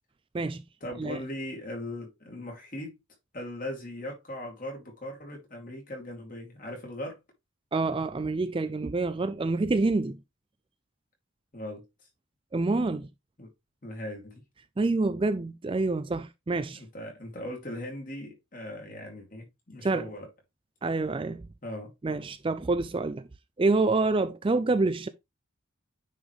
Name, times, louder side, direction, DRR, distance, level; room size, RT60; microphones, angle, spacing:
voice 1, 0.8-2.9 3.3-7.2 11.5-11.8 13.4-13.5 13.8-14.4 16.7-20.3 21.6-21.9, left 1 dB, 40° left, 2.6 m, -39 dB
voice 2, 7.7-10.2 12.5-13.1 14.8-16.8 19.8-20.1 20.8-21.4 22.0-23.2 23.6-25.1, right 3 dB, 25° right, 0.3 m, -27 dB
9.3 x 4.2 x 3.1 m
head